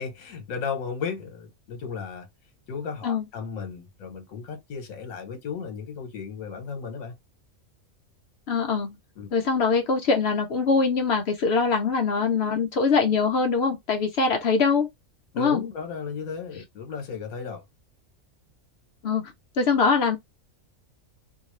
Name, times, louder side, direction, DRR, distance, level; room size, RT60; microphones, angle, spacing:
voice 1, 0.0-2.3 2.7-7.2 9.2-9.3 15.3-17.6, left 6 dB, 75° left, 1.2 m, -34 dB
voice 2, 8.5-8.9 9.3-14.9 15.4-15.6 19.0-19.2 19.6-20.2, left 4 dB, 60° left, 0.7 m, -23 dB
2.6 x 2.3 x 3.0 m
omnidirectional pair, 1.5 m